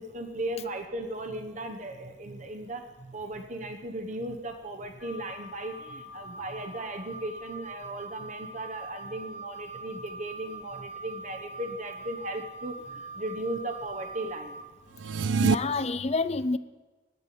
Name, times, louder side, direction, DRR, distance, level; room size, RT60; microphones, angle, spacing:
voice 1, 0.0-14.6, right 1 dB, 40° right, 5 dB, 1.0 m, -37 dB
Wind instrument woodwind instrument, 5.0-14.6, right 2 dB, 75° left, 1.3 m, -43 dB
sound 1, 14.9-15.5, right 5 dB, 85° right, 0.4 m, -24 dB
voice 2, 15.2-16.6, left 3 dB, 35° left, 14 dB, 0.5 m, -28 dB
9.6 x 9.3 x 10.0 m, 1.2 s
head